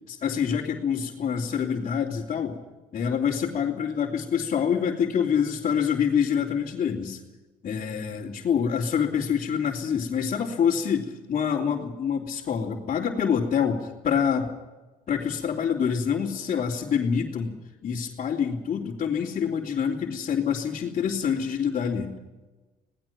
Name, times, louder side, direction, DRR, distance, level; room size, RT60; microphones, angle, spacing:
voice 1, 0.1-2.6 2.9-7.2 7.6-14.5 15.1-17.5 17.8-22.1, left 7 dB, 45° left, -5 dB, 3.2 m, -26 dB
26.0 x 19.0 x 6.0 m, 1.2 s
cardioid pair, 110°, 17 cm